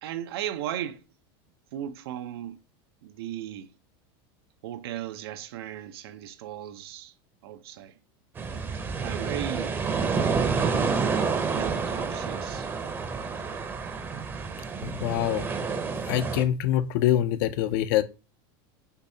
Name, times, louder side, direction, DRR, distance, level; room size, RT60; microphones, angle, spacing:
voice 1, 0.0-1.0 1.7-2.6 3.0-3.7 4.6-7.1 7.4-7.9 9.0-9.8 10.6-10.9 11.5-12.7, right 11 dB, 90° right, 0.7 m, -36 dB
sound 1, 8.4-16.4, right 5 dB, 15° right, 0.6 m, -29 dB
voice 2, 14.8-15.5 16.1-18.0, left 12 dB, 60° left, 0.5 m, -25 dB
6.7 x 2.7 x 2.7 m
supercardioid pair, 155°, 12 cm